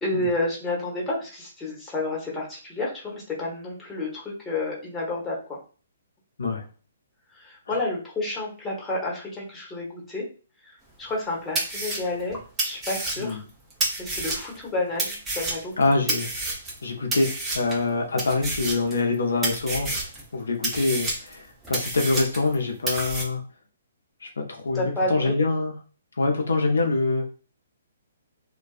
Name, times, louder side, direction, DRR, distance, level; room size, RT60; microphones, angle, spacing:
voice 1, 0.0-5.6 7.3-10.2 10.6-13.4 14.0-15.7 16.1-16.2 24.7-25.3, left 2 dB, 10° left, -4 dB, 1.0 m, -30 dB
sound 1, 11.1-11.2 11.6-14.6 15.0-16.8 17.1-17.8 18.2-19.2 19.4-20.2 20.6-22.6 22.9-23.2, right 2 dB, 15° right, 0.8 m, -29 dB
voice 2, 15.8-16.3 16.8-23.4 24.2-25.7 26.2-27.3, left 3 dB, 75° left, 2 dB, 0.5 m, -25 dB
2.5 x 2.2 x 2.3 m, 0.37 s
figure-of-eight pair, 130°, 0 cm